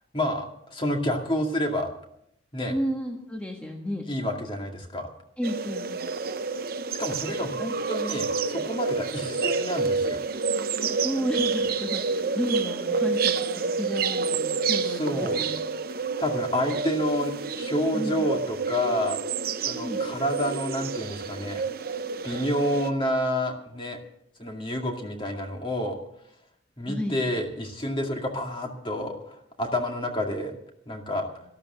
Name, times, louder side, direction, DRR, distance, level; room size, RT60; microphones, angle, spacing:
voice 1, 0.1-1.9 2.5-2.7 4.1-5.1 7.0-10.2 14.8-15.4 16.2-19.2 19.6-21.6 22.2-24.0 24.4-26.0 26.8-30.5 30.9-31.3, equal, 25° left, 2 dB, 2.2 m, -29 dB
voice 2, 2.7-4.1 5.4-6.2 10.8-15.6 17.9-18.3 19.8-20.0 26.8-27.2, equal, 5° left, 0 dB, 1.4 m, -32 dB
sound 1, 5.4-22.9, right 4 dB, 50° right, 0.7 m, -29 dB
13.5 x 12.0 x 6.8 m, 0.73 s
head